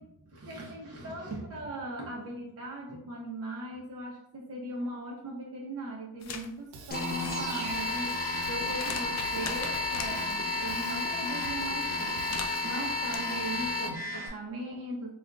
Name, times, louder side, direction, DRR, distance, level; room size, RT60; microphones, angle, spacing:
voice 1, 0.0-15.1, right 1 dB, 35° right, -3 dB, 0.8 m, -39 dB
sound 1, 6.2-6.5 6.9-10.1 12.0-13.2, left 5 dB, 40° left, 0.5 m, -41 dB
Drum kit / Drum, 6.7-12.7, right 4 dB, 85° right, 0.6 m, -46 dB
sound 2, 6.9-14.3, left 2 dB, 20° left, 0.9 m, -32 dB
3.4 x 2.4 x 2.4 m, 0.77 s
cardioid pair, 70°, 41 cm